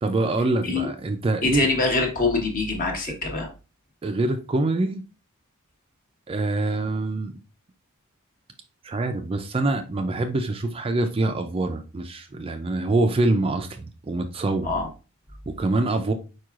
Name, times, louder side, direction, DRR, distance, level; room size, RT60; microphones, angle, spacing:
voice 1, 0.0-1.7 3.1-3.2 4.0-5.0 6.3-7.3 8.8-14.7 15.5-16.1, right 2 dB, 25° right, 0.4 m, -25 dB
voice 2, 1.4-3.5 14.6-14.9, left 3 dB, 40° left, 1.2 m, -24 dB
4.6 x 4.6 x 2.4 m
head